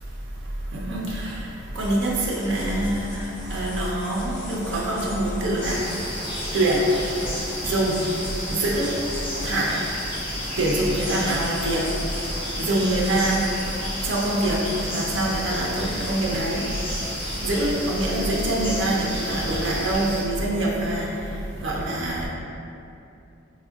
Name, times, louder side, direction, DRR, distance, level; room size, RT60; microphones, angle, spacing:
voice 1, 0.7-1.4 1.8-3.2 3.5-5.8 6.5-6.9 7.7-8.0 8.5-8.9 9.4-9.8 10.6-11.8 12.6-13.5 14.0-14.6 14.9-16.6 17.4-21.1 21.6-22.3, right 1 dB, 65° right, -3 dB, 0.4 m, -24 dB
sound 1, 1.1-20.0, left 1 dB, 85° left, 0.6 m, -41 dB
sound 2, 5.6-20.2, equal, 25° left, 0.5 m, -32 dB
3.5 x 2.0 x 2.2 m, 2.7 s
head